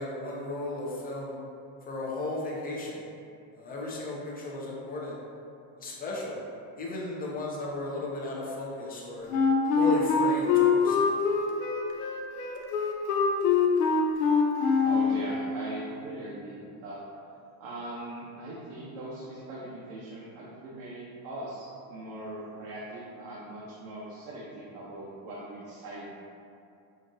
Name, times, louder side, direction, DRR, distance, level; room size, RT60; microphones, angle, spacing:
voice 1, 0.0-1.4 1.8-3.0 3.5-5.2 5.8-6.4 6.8-9.3 9.8-11.1, left 1 dB, 20° left, -4 dB, 0.5 m, -35 dB
Wind instrument woodwind instrument, 9.3-15.2, left 5 dB, 85° left, 0.6 m, -24 dB
voice 2, 14.5-17.0 17.6-26.1, right 1 dB, 85° right, -6 dB, 0.8 m, -41 dB
5.1 x 2.4 x 2.6 m, 2.6 s
cardioid pair, 145°, 47 cm